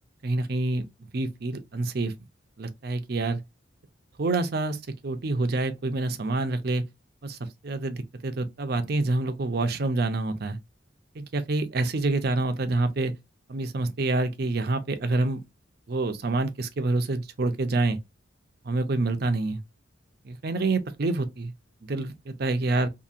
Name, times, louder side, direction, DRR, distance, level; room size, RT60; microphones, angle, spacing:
voice 1, 0.2-0.8 1.1-2.1 2.6-3.4 4.2-4.8 5.0-6.8 7.2-7.4 7.6-10.6 11.2-13.1 13.5-15.4 15.9-18.0 18.7-19.6 20.3-21.5 21.8-22.9, right 2 dB, 55° right, 0.5 m, -27 dB
2.8 x 2.6 x 2.4 m
head